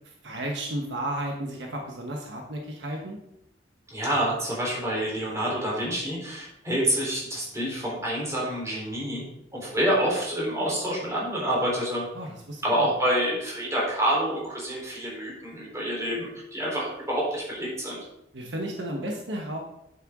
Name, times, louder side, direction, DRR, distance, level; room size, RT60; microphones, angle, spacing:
voice 1, 0.0-3.2 12.1-13.0 18.3-19.6, right 1 dB, 65° right, 1 dB, 1.3 m, -33 dB
voice 2, 3.9-9.2 9.5-12.0 12.6-18.1, right 1 dB, 15° right, -4 dB, 4.0 m, -27 dB
9.1 x 7.7 x 3.8 m, 0.80 s
head